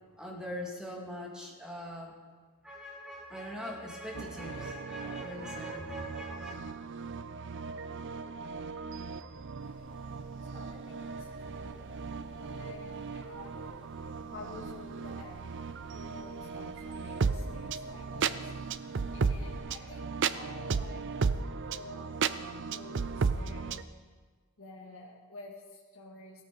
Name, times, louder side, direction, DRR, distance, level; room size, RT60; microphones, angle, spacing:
voice 1, 0.2-2.1 2.6-6.5, equal, 5° right, -2 dB, 2.5 m, -41 dB
sound 1, 4.1-23.8, right 5 dB, 55° right, 0.5 m, -36 dB
sound 2, 9.6-19.6, equal, 25° right, 5.8 m, -56 dB
voice 2, 10.5-11.9 12.3-14.0 14.3-15.4 15.9-18.5 19.1-21.0 21.7-22.2 22.7-23.9 24.6-26.4, left 3 dB, 60° left, -3 dB, 2.0 m, -50 dB
16.5 x 13.5 x 5.3 m, 1.5 s
head